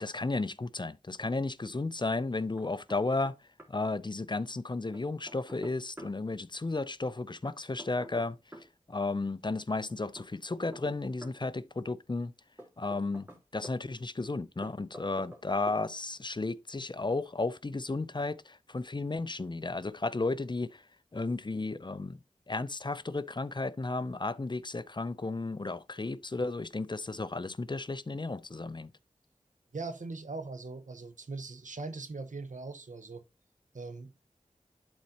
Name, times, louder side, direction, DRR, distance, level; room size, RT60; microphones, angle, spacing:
voice 1, 0.0-3.4 3.7-8.4 8.9-12.3 12.8-20.8 21.1-22.2 22.5-28.9, left 3 dB, 35° left, 0.5 m, -33 dB
Knock, 2.6-3.3 3.6-3.7 4.9-6.1 7.5-8.7 10.2-11.4 12.6-13.8 14.6-15.4 15.7-15.8, equal, 15° right, 2.8 m, -48 dB
voice 2, 29.7-33.2 33.7-34.1, right 3 dB, 75° right, 1.0 m, -40 dB
11.5 x 4.1 x 2.8 m
wide cardioid pair, 45°, 13 cm